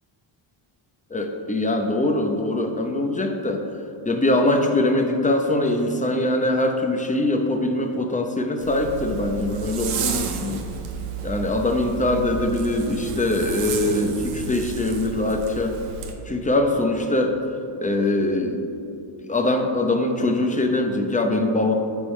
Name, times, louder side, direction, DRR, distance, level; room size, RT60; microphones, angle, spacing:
voice 1, 1.1-3.7 4.0-10.7 11.2-15.7 16.3-17.4 17.8-18.6 19.2-21.7, left 2 dB, 15° left, 4 dB, 0.8 m, -22 dB
Zipper (clothing), 8.6-16.1, right 6 dB, 85° right, 0.9 m, -32 dB
10.5 x 5.2 x 3.3 m, 2.9 s
cardioid pair, 80°, 50 cm